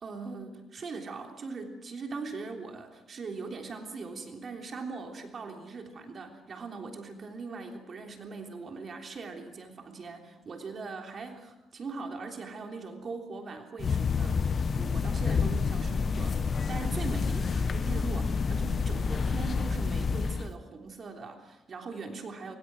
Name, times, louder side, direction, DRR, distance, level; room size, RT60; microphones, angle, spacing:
voice 1, 0.0-16.4 16.7-22.6, right 4 dB, 45° right, 3 dB, 3.4 m, -41 dB
sound 1, 13.8-20.5, left 5 dB, 45° left, 1.1 m, -28 dB
25.5 x 24.0 x 6.2 m, 0.90 s
cardioid pair, 90°, 0 cm